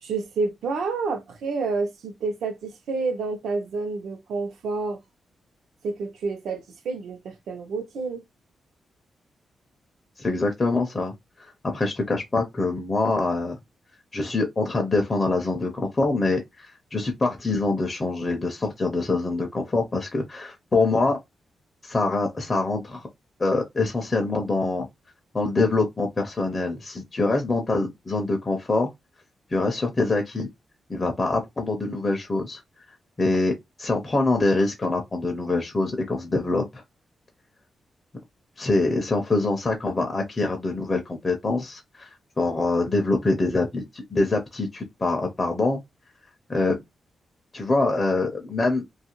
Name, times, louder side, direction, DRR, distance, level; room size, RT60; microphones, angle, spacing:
voice 1, 0.0-5.0 5.8-8.2, right 4 dB, 85° right, 0.7 m, -29 dB
voice 2, 10.2-11.1 11.4-13.6 14.1-21.2 21.8-23.1 23.4-24.9 25.3-28.9 29.5-30.5 30.9-32.6 33.2-36.8 38.6-45.8 46.5-46.8 47.5-48.8, left 2 dB, 20° left, 0.4 m, -25 dB
2.7 x 2.4 x 2.9 m
wide cardioid pair, 175°, 0 cm